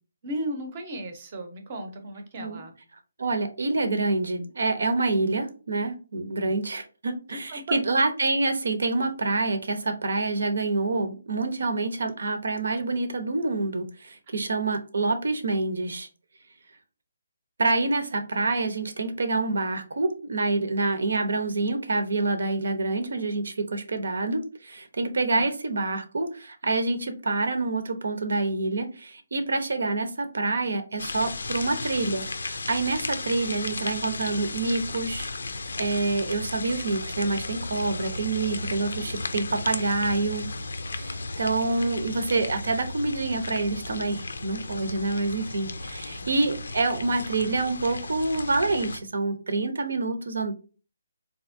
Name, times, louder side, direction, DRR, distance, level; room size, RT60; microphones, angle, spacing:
voice 1, 0.2-2.7 7.3-7.8 25.3-25.5, right 1 dB, 25° right, 5 dB, 0.7 m, -35 dB
voice 2, 3.2-16.1 17.6-35.3 35.8-40.5 40.9-50.5, right 3 dB, 70° right, 8 dB, 0.7 m, -27 dB
sound 1, 31.0-49.0, left 3 dB, 85° left, 0.5 m, -35 dB
3.6 x 2.8 x 2.6 m, 0.35 s
hypercardioid pair, 175°, 0 cm